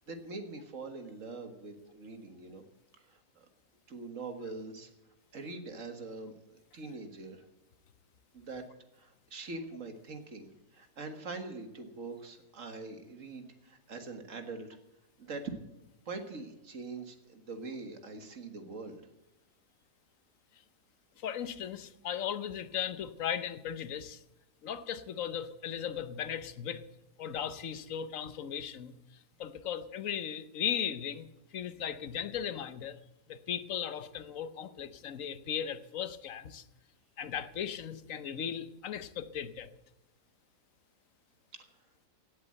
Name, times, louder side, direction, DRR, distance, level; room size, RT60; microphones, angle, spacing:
voice 1, 0.1-2.7 3.0-3.5 3.9-4.9 5.3-7.4 8.3-8.7 8.9-14.7 15.2-15.5 16.1-19.0 41.5-41.7, right 3 dB, 55° right, 6 dB, 2.0 m, -43 dB
voice 2, 21.2-24.2 24.6-26.8 27.2-28.9 29.4-31.3 31.5-33.0 33.3-36.6 37.2-39.7, left 9 dB, 60° left, 12 dB, 1.2 m, -37 dB
16.5 x 8.0 x 7.7 m, 0.97 s
omnidirectional pair, 1.6 m